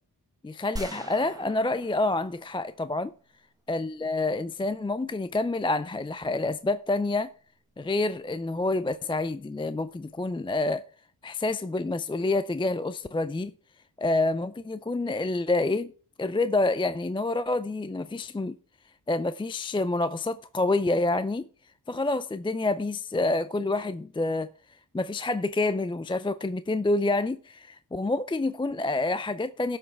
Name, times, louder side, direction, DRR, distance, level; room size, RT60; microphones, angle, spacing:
voice 1, 0.4-3.1 3.7-7.3 7.8-10.9 11.2-13.5 14.0-15.9 16.2-18.6 19.1-21.5 21.9-24.5 24.9-29.8, left 2 dB, 15° left, 0.4 m, -28 dB
sound 1, 0.8-3.1, right 1 dB, 10° right, 1.3 m, -42 dB
17.5 x 6.2 x 3.3 m
cardioid pair, 75°, 40 cm